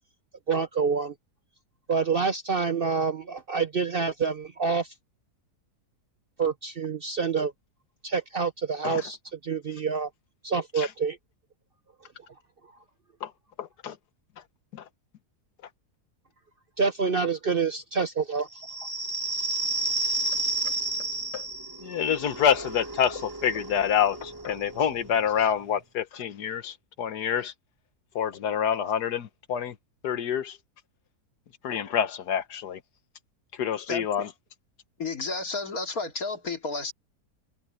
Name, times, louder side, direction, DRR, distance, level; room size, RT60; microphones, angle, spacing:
voice 1, 0.5-1.1 1.9-4.9 6.4-7.5 8.0-9.2 9.4-10.1 10.4-11.2 16.8-18.5 18.8-18.9, right 5 dB, 45° right, 0.8 m, -27 dB
voice 2, 13.6-13.9 14.7-14.8 21.3-21.4 21.8-27.5 28.1-29.7 30.0-30.6 31.6-32.8 33.6-34.3, left 8 dB, 85° left, 1.6 m, -27 dB
sound 1, 18.5-25.8, right 2 dB, 15° right, 1.8 m, -32 dB
voice 3, 35.0-36.9, left 3 dB, 65° left, 3.1 m, -31 dB
omnidirectional pair, 1.7 m